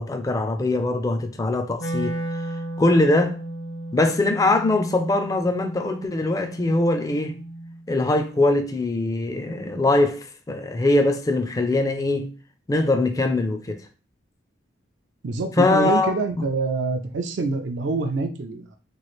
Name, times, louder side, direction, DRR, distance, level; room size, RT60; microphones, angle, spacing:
voice 1, 0.0-2.1 2.8-3.4 3.9-7.4 7.9-12.3 12.7-13.8 15.6-16.1, left 2 dB, 20° left, 0.3 m, -22 dB
Wind instrument woodwind instrument, 1.8-7.8, right 1 dB, 85° left, 0.8 m, -34 dB
voice 2, 15.2-18.7, right 3 dB, 70° right, 0.4 m, -26 dB
3.0 x 2.4 x 3.1 m
head